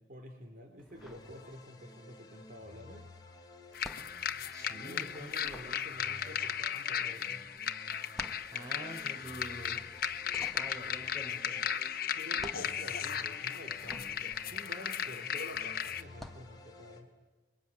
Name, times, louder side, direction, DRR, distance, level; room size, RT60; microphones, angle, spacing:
voice 1, 0.0-3.1 4.8-7.5 12.1-17.1, left 1 dB, 50° right, 3 dB, 3.1 m, -49 dB
sound 1, 0.8-2.0 2.3-15.5 16.0-16.5, equal, ahead, 1.5 m, -52 dB
sound 2, 1.0-17.0, left 2 dB, 20° left, 3.7 m, -54 dB
sound 3, 3.7-16.0, left 8 dB, 55° left, 1.1 m, -36 dB
voice 2, 4.5-5.3 8.5-9.8 10.5-11.7, equal, 20° right, 1 dB, 6.1 m, -46 dB
26.5 x 23.5 x 9.5 m, 1.3 s
head